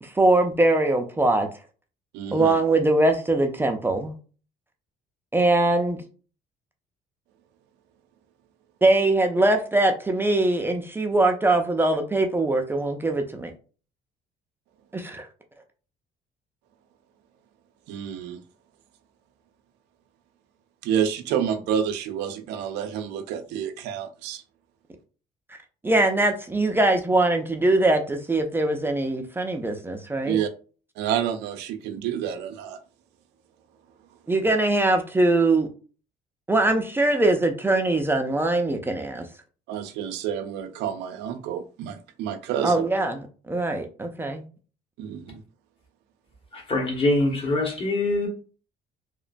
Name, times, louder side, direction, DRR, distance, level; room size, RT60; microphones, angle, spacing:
voice 1, 0.0-1.5 2.3-4.1 5.3-6.0 8.8-13.5 14.9-15.3 25.8-30.4 34.3-35.7 36.5-39.2 42.6-44.4, right 2 dB, 15° right, 0.4 m, -22 dB
voice 2, 2.1-2.5 17.9-18.4 20.8-24.4 30.2-30.5 31.0-32.8 39.7-42.8 45.0-45.4, right 9 dB, 85° right, 0.4 m, -29 dB
voice 3, 46.5-48.3, left 2 dB, 35° left, 1.1 m, -24 dB
2.9 x 2.1 x 2.5 m
cardioid pair, 110°, 17 cm